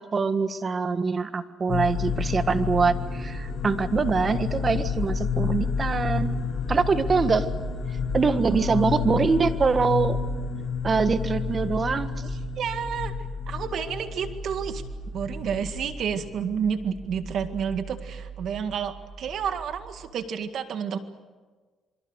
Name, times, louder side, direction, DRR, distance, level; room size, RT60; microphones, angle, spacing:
voice 1, 0.0-6.4 6.7-7.5 8.1-10.2 10.8-12.1, right 4 dB, 35° right, 10 dB, 1.6 m, -24 dB
sound 1, 1.7-20.1, left 5 dB, 55° left, 7.4 m, -31 dB
voice 2, 8.5-8.9 12.2-13.1 13.5-14.8 15.1-21.0, right 7 dB, 65° right, 8 dB, 1.9 m, -30 dB
26.5 x 24.5 x 6.5 m, 1.4 s
cardioid pair, 85°, 0 cm